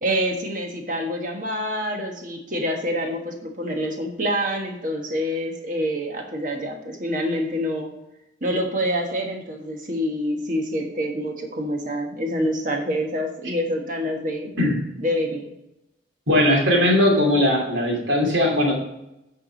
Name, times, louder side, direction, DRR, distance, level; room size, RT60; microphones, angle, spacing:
voice 1, 0.0-7.9 8.4-14.5 15.0-15.5, equal, 45° right, 2 dB, 1.4 m, -26 dB
voice 2, 16.3-18.7, left 1 dB, 85° right, -1 dB, 2.7 m, -19 dB
9.3 x 4.9 x 5.1 m, 0.87 s
head